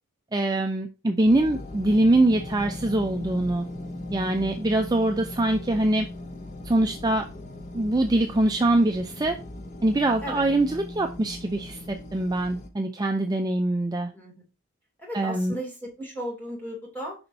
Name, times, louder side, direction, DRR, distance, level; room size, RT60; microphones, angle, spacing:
voice 1, 0.3-3.6 4.1-6.1 6.6-7.3 7.7-9.4 9.8-14.1 15.1-15.5, right 1 dB, 20° right, 0.4 m, -23 dB
sound 1, 1.3-12.7, left 1 dB, 30° left, 0.7 m, -38 dB
voice 2, 10.2-10.5 14.1-14.4 15.0-17.2, equal, 10° left, 2.4 m, -36 dB
7.0 x 5.3 x 2.6 m
head